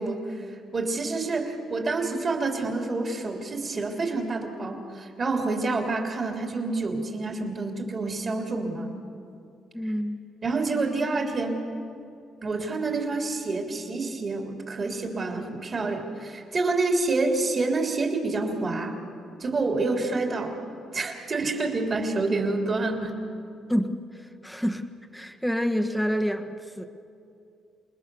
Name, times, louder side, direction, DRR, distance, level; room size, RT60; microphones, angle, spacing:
voice 1, 0.0-8.9 10.4-11.6 12.4-18.9 19.4-20.6 20.9-23.1, right 3 dB, 40° right, 2 dB, 3.3 m, -28 dB
voice 2, 9.7-10.2 23.7-24.8 25.1-26.9, equal, ahead, 7 dB, 1.4 m, -28 dB
28.0 x 20.5 x 7.0 m, 2.6 s
cardioid pair, 90°, 0 cm